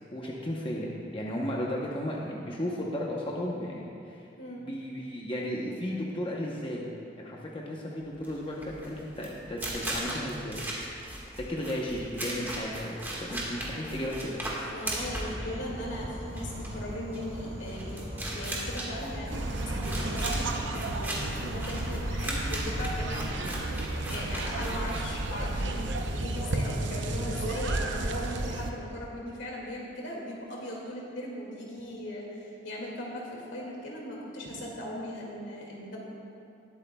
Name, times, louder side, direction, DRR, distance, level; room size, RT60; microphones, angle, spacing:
voice 1, 0.1-4.2 4.6-6.8 7.2-10.6 11.1-14.4, equal, 30° left, -3 dB, 0.9 m, -34 dB
voice 2, 4.4-4.7 14.6-36.0, left 1 dB, 80° left, -3 dB, 2.2 m, -39 dB
sound 1, 8.1-25.5, right 1 dB, 10° right, 1.6 m, -37 dB
Insect / Frog, 14.8-22.9, equal, 35° right, 1.5 m, -40 dB
sound 2, 19.3-28.7, right 2 dB, 70° right, 0.7 m, -32 dB
19.5 x 8.2 x 2.3 m, 2.6 s
head